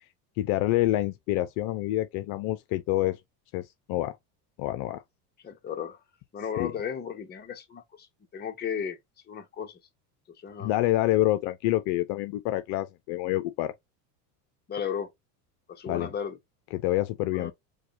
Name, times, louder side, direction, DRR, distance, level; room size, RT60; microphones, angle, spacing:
voice 1, 0.4-3.2 3.5-4.1 4.6-5.0 6.6-6.7 10.6-13.7 15.9-16.1 16.7-17.5, left 15 dB, 55° left, 0.5 m, -27 dB
voice 2, 5.4-6.0 6.3-8.1 8.3-9.0 9.3-9.8 10.4-10.7 14.7-15.1 15.7-16.4 17.3-17.5, left 7 dB, 20° left, 0.8 m, -34 dB
4.7 x 2.2 x 2.8 m
supercardioid pair, 115°, 47 cm